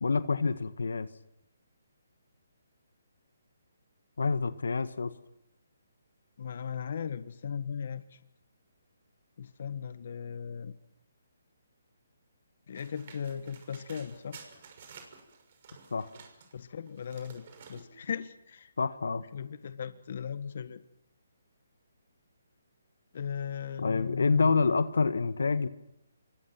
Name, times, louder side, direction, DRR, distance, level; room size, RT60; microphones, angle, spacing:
voice 1, 0.0-1.1 4.2-5.1 15.9-16.1 18.8-19.2 23.8-25.7, left 4 dB, 80° left, 11 dB, 1.6 m, -27 dB
voice 2, 6.4-8.2 9.4-10.7 12.7-14.4 16.5-18.7 19.3-20.8 23.1-24.7, left 7 dB, 55° left, 11 dB, 1.5 m, -38 dB
sound 1, 12.7-16.5 16.9-17.8, right 6 dB, 45° right, 6.2 m, -52 dB
27.5 x 23.5 x 6.0 m, 0.83 s
hypercardioid pair, 150°, 0 cm